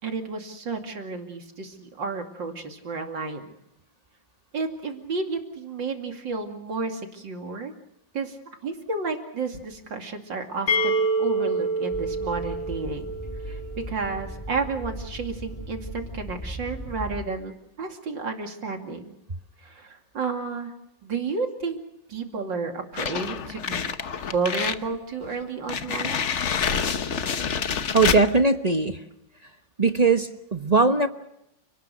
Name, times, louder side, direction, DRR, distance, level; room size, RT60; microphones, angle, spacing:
voice 1, 0.0-3.5 4.5-7.7 8.1-8.4 8.6-13.2 13.4-13.6 13.9-19.1 19.6-20.7 21.0-21.8 22.1-23.9 24.3-26.3, right 4 dB, 75° right, 4 dB, 3.2 m, -31 dB
sound 1, 10.7-14.4, right 2 dB, 85° left, 4.4 m, -27 dB
Train, 11.9-17.3, equal, 15° left, 4.8 m, -37 dB
sound 2, 23.0-24.9 25.2-25.3 25.7-28.3, left 6 dB, 45° left, 1.2 m, -27 dB
voice 2, 27.9-29.0 29.8-31.1, right 3 dB, 25° right, 8 dB, 0.9 m, -20 dB
30.0 x 19.0 x 6.4 m, 0.84 s
omnidirectional pair, 2.0 m